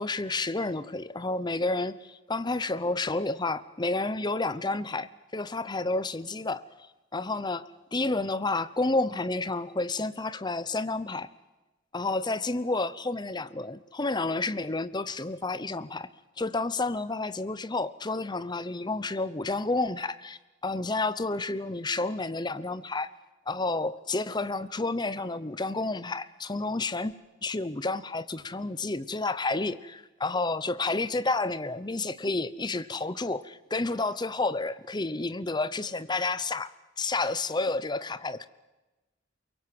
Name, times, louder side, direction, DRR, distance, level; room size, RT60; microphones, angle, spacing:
voice 1, 0.0-6.6 7.1-11.3 11.9-16.1 16.4-23.1 23.5-27.1 27.4-38.5, left 3 dB, 20° left, 15 dB, 0.8 m, -30 dB
24.0 x 23.0 x 7.7 m, 1.1 s
head